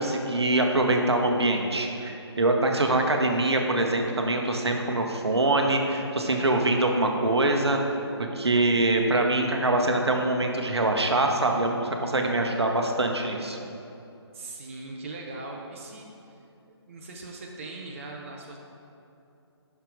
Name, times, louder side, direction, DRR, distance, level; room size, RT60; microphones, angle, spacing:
voice 1, 0.0-8.0 8.3-13.6, right 2 dB, 70° right, 3 dB, 0.8 m, -24 dB
voice 2, 14.3-16.4 16.7-18.6, right 2 dB, 30° right, 0 dB, 0.5 m, -40 dB
5.9 x 5.7 x 4.7 m, 2.7 s
figure-of-eight pair, 145°, 14 cm